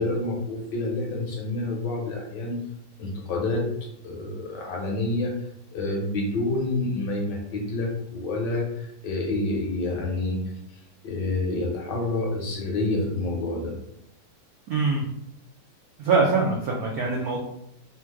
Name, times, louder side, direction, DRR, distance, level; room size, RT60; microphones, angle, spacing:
voice 1, 0.0-2.6 3.0-5.3 5.7-10.4 11.0-13.8, left 2 dB, 65° left, -1 dB, 1.2 m, -28 dB
voice 2, 14.7-15.0 16.0-17.4, right 4 dB, 90° right, -2 dB, 0.8 m, -23 dB
3.5 x 2.4 x 4.5 m, 0.77 s
omnidirectional pair, 2.4 m